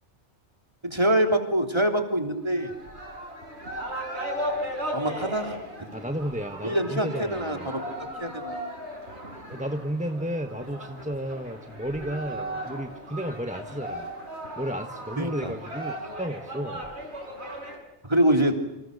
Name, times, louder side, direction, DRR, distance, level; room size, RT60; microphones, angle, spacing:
voice 1, 0.8-2.7 4.9-5.9 6.6-7.8 8.2-8.7 15.2-15.5 18.1-18.6, right 1 dB, 25° right, 4 dB, 3.3 m, -25 dB
sound 1, 2.5-17.8, equal, 70° right, 6.0 m, -36 dB
voice 2, 5.9-7.7 9.5-14.1 14.6-16.9, equal, 5° right, 6 dB, 1.2 m, -33 dB
29.5 x 26.5 x 6.7 m, 0.89 s
omnidirectional pair, 1.2 m